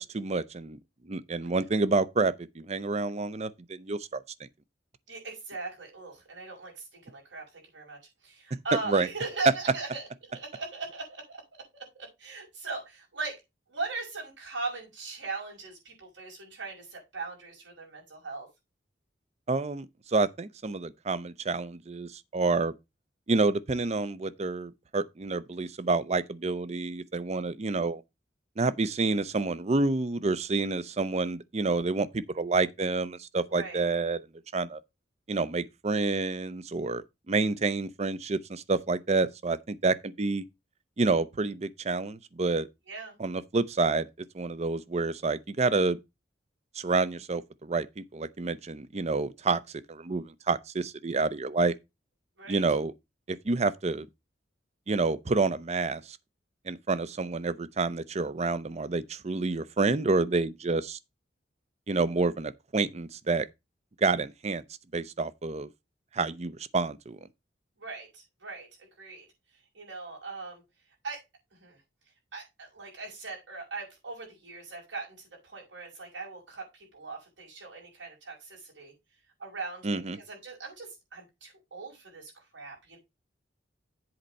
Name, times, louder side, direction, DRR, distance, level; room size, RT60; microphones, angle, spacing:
voice 1, 0.1-0.8 1.1-4.5 8.9-9.1 19.5-22.7 23.3-28.0 28.6-34.3 34.5-34.8 35.3-40.4 41.0-42.7 43.2-44.1 44.3-46.0 46.8-49.6 49.9-51.7 52.5-52.9 53.3-54.1 54.9-56.2 56.7-61.0 61.9-63.5 64.0-64.6 64.9-65.7 66.1-67.2 79.8-80.2, right 3 dB, 35° right, 0.6 m, -28 dB
voice 2, 5.1-11.4 11.7-13.4 13.7-18.5 33.5-33.8 42.9-43.2 52.4-52.6 67.8-69.3 69.7-70.6 71.0-71.2 71.5-71.8 72.3-78.9 79.4-83.0, right 3 dB, 80° right, 5.5 m, -39 dB
7.9 x 4.2 x 6.5 m
head